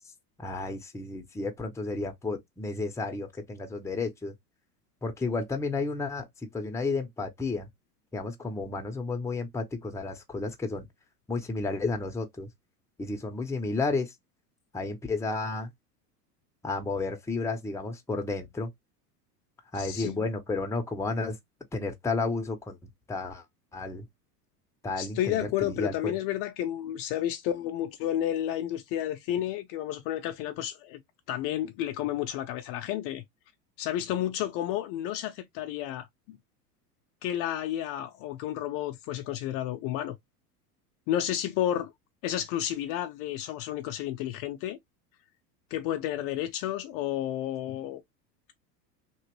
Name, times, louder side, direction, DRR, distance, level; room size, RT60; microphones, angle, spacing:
voice 1, 0.4-4.3 5.0-7.7 8.1-10.9 11.3-12.5 13.0-14.1 14.7-15.7 16.6-18.7 19.7-21.4 21.7-22.8 23.1-23.4 23.7-24.1 24.8-26.2, left 3 dB, 5° left, 0.6 m, -32 dB
voice 2, 19.7-20.2 25.0-31.0 31.3-33.2 33.8-36.4 37.2-40.2 41.1-41.9 42.2-44.8 45.7-48.0, left 12 dB, 45° left, 0.6 m, -31 dB
3.0 x 2.8 x 3.0 m
hypercardioid pair, 85°, 48 cm